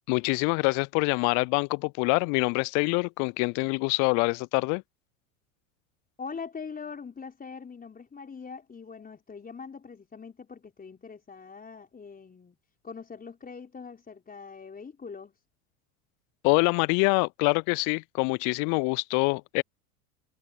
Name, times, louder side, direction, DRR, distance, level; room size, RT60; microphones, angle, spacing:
voice 1, 0.1-4.8 16.4-19.6, left 33 dB, 45° left, 0.5 m, -25 dB
voice 2, 6.2-12.6 12.8-15.3, left 5 dB, 20° left, 5.0 m, -42 dB
hypercardioid pair, 85°, 42 cm